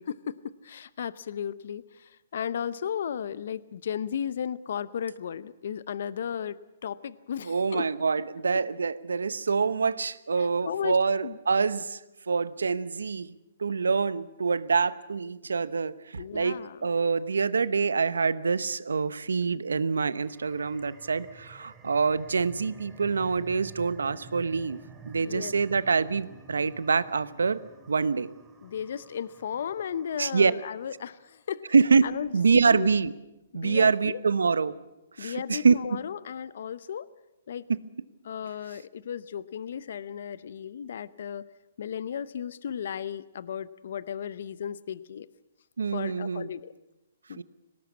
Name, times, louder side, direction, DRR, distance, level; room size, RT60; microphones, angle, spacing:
voice 1, 0.1-6.6 6.8-7.9 10.4-11.0 11.2-11.4 16.2-16.9 25.2-25.5 28.6-31.6 32.0-32.9 33.5-34.2 35.2-37.1 37.5-37.7 38.2-41.5 41.8-45.3 45.9-46.7 47.3-47.4, left 8 dB, 65° left, 18 dB, 0.7 m, -35 dB
voice 2, 7.4-12.0 12.3-13.3 13.6-24.8 25.1-27.6 27.9-28.3 30.2-30.5 31.7-32.1 32.3-33.1 33.5-34.8 35.2-36.0 37.7-37.8 45.8-46.5 47.4-47.5, right 5 dB, 90° right, 17 dB, 0.8 m, -25 dB
sound 1, 20.1-31.1, right 4 dB, 15° right, 2.5 m, -51 dB
19.0 x 18.0 x 8.4 m, 0.98 s
hypercardioid pair, 140°, 0 cm